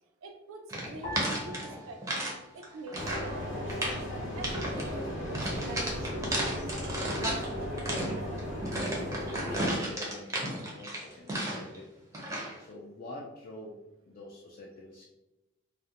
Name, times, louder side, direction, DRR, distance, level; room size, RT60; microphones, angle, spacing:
voice 1, 0.2-4.0 4.3-6.3, right 2 dB, 85° right, 5 dB, 0.4 m, -45 dB
sound 1, 0.7-2.4 2.6-3.3 3.6-4.0 4.4-4.9 5.3-7.5 7.8-11.8 12.1-12.6, right 1 dB, 15° right, 0.5 m, -33 dB
sound 2, 1.0-3.6 3.8-4.7 5.3-5.8, equal, 25° left, 0.7 m, -45 dB
sound 3, 3.0-9.8, equal, 65° left, 0.8 m, -36 dB
voice 2, 7.0-8.1 8.6-11.9 12.3-13.8 14.0-15.0, left 1 dB, 45° left, -3 dB, 0.3 m, -47 dB
2.4 x 2.1 x 2.7 m, 0.97 s
head